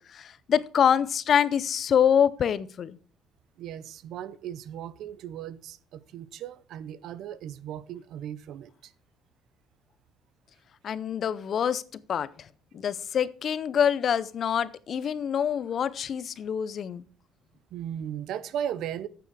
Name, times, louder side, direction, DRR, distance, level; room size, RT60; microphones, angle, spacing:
voice 1, 0.1-2.9 10.8-12.3 12.7-17.1, left 8 dB, 45° left, 0.5 m, -25 dB
voice 2, 3.6-8.9 12.7-12.8 17.7-19.1, right 10 dB, 70° right, 0.6 m, -37 dB
9.0 x 6.9 x 4.7 m
cardioid pair, 130°, 0 cm